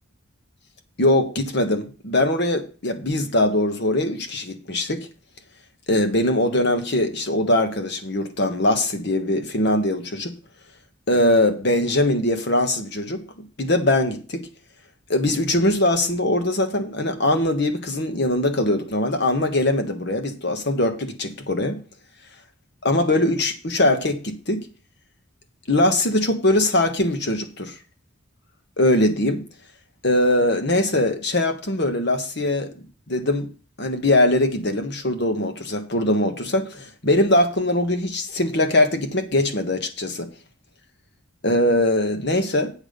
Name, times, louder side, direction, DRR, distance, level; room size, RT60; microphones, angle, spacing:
voice 1, 1.0-5.1 5.9-10.4 11.1-13.2 13.6-14.5 15.1-21.8 22.8-24.6 25.7-27.7 28.8-29.4 30.0-32.7 33.1-33.5 33.8-40.3 41.4-42.7, left 1 dB, 50° left, 1.4 m, -21 dB
8.5 x 7.2 x 5.3 m
head